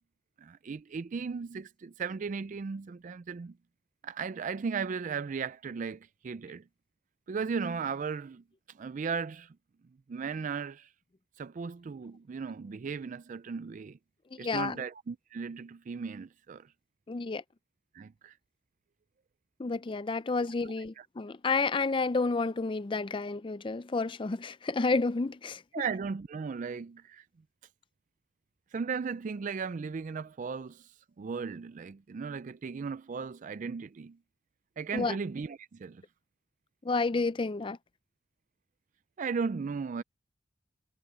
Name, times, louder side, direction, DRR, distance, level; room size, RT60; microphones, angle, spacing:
voice 1, 0.4-3.6 4.0-6.6 7.3-8.4 8.7-9.6 10.1-10.9 11.4-14.0 14.4-16.7 17.9-18.3 21.0-21.1 25.7-27.2 28.7-30.9 31.2-34.2 34.8-36.0 39.2-40.0, right 5 dB, 40° right, 0.3 m, -36 dB
voice 2, 14.3-14.8 17.1-17.4 19.6-25.6 34.9-35.2 36.8-37.8, left 3 dB, 25° left, 0.4 m, -30 dB
head